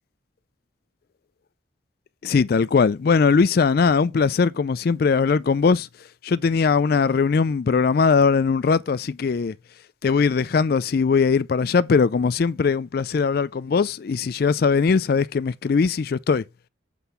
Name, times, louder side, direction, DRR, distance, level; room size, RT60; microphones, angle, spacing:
voice 1, 2.2-5.9 6.2-9.5 10.0-16.4, left 5 dB, 50° left, 0.3 m, -20 dB
8.0 x 3.9 x 6.8 m
head